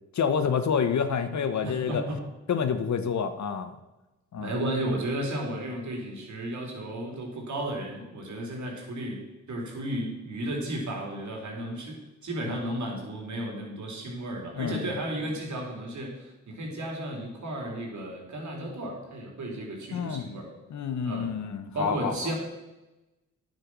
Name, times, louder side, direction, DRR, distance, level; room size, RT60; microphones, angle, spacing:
voice 1, 0.1-2.0 2.5-3.7 4.3-4.5 12.4-12.6 14.5-14.9 19.9-20.3 20.7-22.3, left 6 dB, 60° left, 10 dB, 1.1 m, -28 dB
voice 2, 1.6-2.2 4.4-9.2 9.5-12.0 12.2-20.5 21.0-21.3 21.7-22.3, right 1 dB, 65° right, 0 dB, 3.5 m, -33 dB
10.0 x 6.7 x 6.1 m, 1.0 s
supercardioid pair, 55°, 32 cm